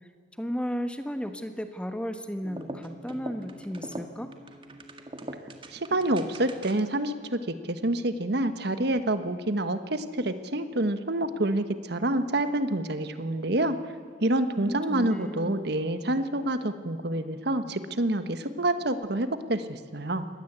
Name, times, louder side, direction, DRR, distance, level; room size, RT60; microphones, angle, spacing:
voice 1, 0.4-4.3 14.5-15.6, equal, 5° left, 7 dB, 1.3 m, -34 dB
sound 1, 2.4-7.0, right 1 dB, 30° right, 1.9 m, -42 dB
voice 2, 5.7-13.8 14.2-20.3, right 1 dB, 60° right, 10 dB, 1.4 m, -27 dB
24.5 x 19.0 x 8.2 m, 2.1 s
head